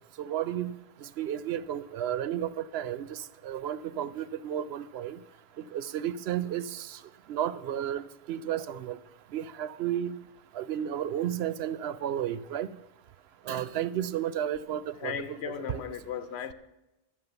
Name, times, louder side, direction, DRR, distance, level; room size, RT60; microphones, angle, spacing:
voice 1, 0.2-5.2 5.7-7.0 7.3-9.0 9.3-10.2 10.5-12.7 13.5-15.8, right 10 dB, 75° right, 16 dB, 0.8 m, -33 dB
voice 2, 15.0-16.5, left 8 dB, 80° left, 12 dB, 1.0 m, -36 dB
13.0 x 7.5 x 6.9 m, 0.96 s
omnidirectional pair, 1.1 m